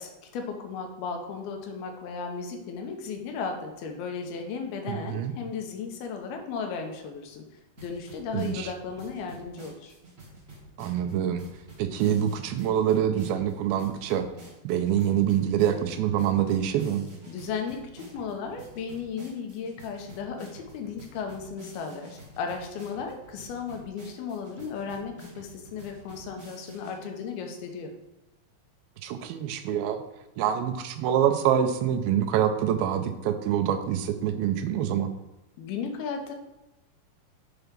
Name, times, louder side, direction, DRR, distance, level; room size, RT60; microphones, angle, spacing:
voice 1, 0.0-7.4 7.8-9.9 17.3-27.9 35.6-36.3, left 5 dB, 85° left, 3 dB, 2.9 m, -35 dB
voice 2, 4.9-5.3 8.3-8.7 10.8-11.4 11.8-14.3 14.6-17.1 29.0-30.0 30.4-35.1, right 9 dB, 90° right, 7 dB, 2.5 m, -25 dB
sound 1, 7.8-26.9, right 1 dB, 40° right, 0.8 m, -49 dB
7.0 x 4.6 x 5.2 m, 1.0 s
omnidirectional pair, 4.3 m